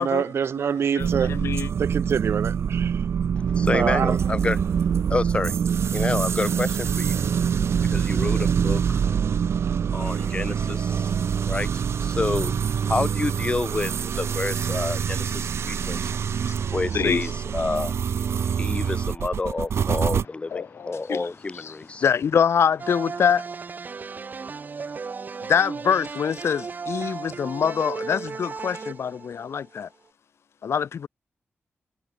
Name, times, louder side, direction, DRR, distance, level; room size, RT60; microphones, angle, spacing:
voice 1, 0.0-1.4 1.8-3.0 3.7-4.2, right 7 dB, 75° right, 0.7 m, -25 dB
voice 2, 0.7-1.7 16.9-17.2 20.5-21.3 21.5-21.7 22.0-23.4 25.5-29.9 30.6-31.1, left 7 dB, 80° left, 2.0 m, -24 dB
sound 1, 1.0-20.2, right 7 dB, 90° right, 2.0 m, -25 dB
voice 3, 3.4-5.6 5.9-7.2 7.8-9.0 9.9-22.0, left 3 dB, 25° left, 1.9 m, -29 dB
sound 2, 22.8-29.8, right 5 dB, 45° right, 1.3 m, -35 dB
wide cardioid pair, 160°, 4 cm